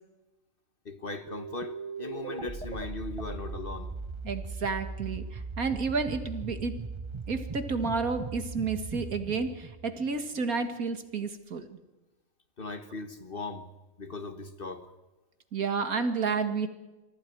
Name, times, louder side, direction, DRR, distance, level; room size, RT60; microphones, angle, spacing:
voice 1, 0.8-3.9 12.6-13.7 14.0-14.9, left 3 dB, 40° left, 1.6 m, -38 dB
sound 1, 1.3-10.6, right 4 dB, 25° right, 0.7 m, -39 dB
voice 2, 4.2-6.7 7.3-11.8 15.5-16.7, right 4 dB, 75° right, 2.4 m, -31 dB
27.0 x 24.0 x 4.7 m
omnidirectional pair, 1.5 m